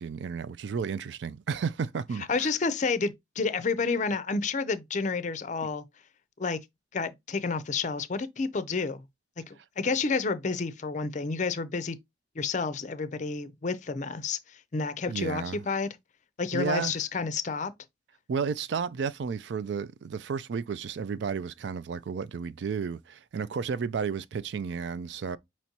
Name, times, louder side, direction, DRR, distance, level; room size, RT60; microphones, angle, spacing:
voice 1, 0.0-2.5 15.1-15.7 16.5-17.0 18.3-25.4, right 6 dB, 65° right, 0.3 m, -32 dB
voice 2, 2.3-5.8 6.4-6.6 6.9-9.0 9.5-12.0 12.4-14.4 14.7-16.0 16.4-17.7, left 4 dB, 40° left, 0.5 m, -30 dB
5.9 x 3.0 x 2.8 m
head